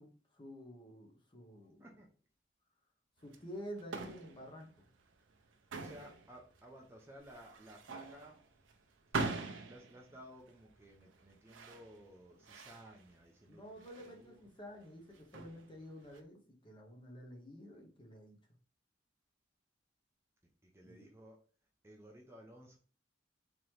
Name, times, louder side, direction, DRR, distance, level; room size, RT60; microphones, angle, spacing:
voice 1, 0.0-1.9 3.2-4.9 13.5-18.4 20.8-21.1, equal, 25° left, 1 dB, 1.0 m, -50 dB
sound 1, 3.2-16.2, right 3 dB, 90° right, 0.6 m, -45 dB
voice 2, 5.7-8.4 9.7-14.4 20.6-21.4 21.8-22.8, equal, 15° right, 0 dB, 0.6 m, -56 dB
3.9 x 3.0 x 3.2 m, 0.39 s
head